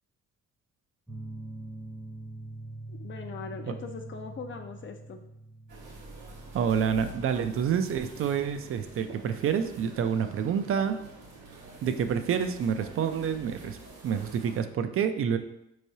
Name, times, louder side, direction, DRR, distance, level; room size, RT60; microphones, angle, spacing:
sound 1, 1.1-12.3, right 2 dB, ahead, 0.7 m, -45 dB
voice 1, 2.9-5.2, left 5 dB, 40° left, 5 dB, 0.4 m, -41 dB
sound 2, 5.7-14.6, right 2 dB, 90° right, 1.3 m, -47 dB
voice 2, 6.5-11.0 11.8-13.8 14.0-15.4, right 7 dB, 45° right, 9 dB, 0.4 m, -28 dB
4.4 x 3.2 x 2.7 m, 0.82 s
cardioid pair, 90°, 30 cm